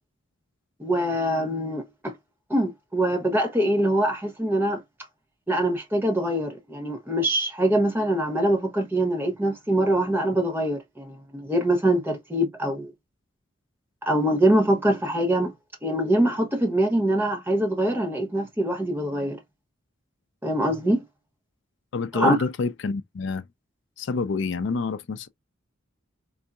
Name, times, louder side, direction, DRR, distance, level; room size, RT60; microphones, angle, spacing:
voice 1, 0.8-2.1 2.5-4.8 5.5-12.9 14.0-15.5 15.8-19.4 20.4-21.0 22.1-22.4, right 1 dB, 10° right, 0.8 m, -24 dB
voice 2, 21.9-23.4 24.0-25.3, left 4 dB, 60° left, 0.4 m, -27 dB
3.8 x 2.6 x 2.3 m
head